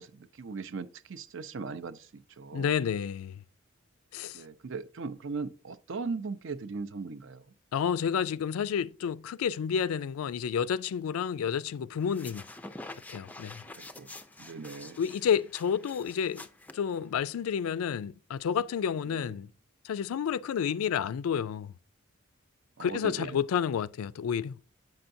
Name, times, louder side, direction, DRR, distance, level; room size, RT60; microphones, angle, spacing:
voice 1, 0.0-2.7 4.3-7.4 13.7-14.1 14.4-15.0 22.8-23.3, right 4 dB, 60° right, 0.5 m, -38 dB
voice 2, 2.5-3.4 4.1-4.4 7.7-12.4 13.1-13.6 15.0-16.5 16.7-19.5 19.8-21.7 22.8-24.6, left 7 dB, 90° left, 0.3 m, -30 dB
sound 1, 12.0-17.4, left 2 dB, 10° left, 0.4 m, -47 dB
7.7 x 5.7 x 2.6 m
head